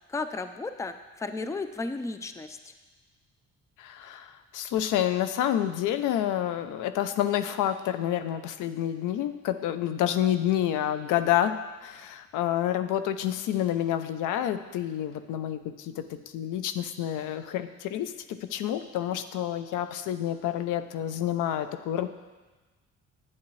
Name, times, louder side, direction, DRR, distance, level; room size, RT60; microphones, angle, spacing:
voice 1, 0.1-2.6, left 3 dB, 10° left, 9 dB, 0.4 m, -34 dB
voice 2, 3.8-22.1, left 11 dB, 85° left, 11 dB, 0.5 m, -29 dB
8.4 x 8.4 x 3.1 m, 1.2 s
cardioid pair, 90°, 30 cm